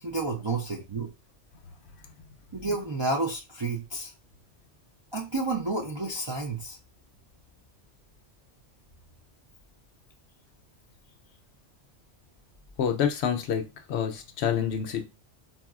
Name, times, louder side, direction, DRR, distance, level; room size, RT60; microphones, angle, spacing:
voice 1, 0.0-1.1 2.5-4.1 5.1-6.8, right 3 dB, 50° right, 0.3 m, -30 dB
voice 2, 12.8-15.1, left 8 dB, 70° left, 0.8 m, -28 dB
4.1 x 2.3 x 2.3 m
omnidirectional pair, 1.2 m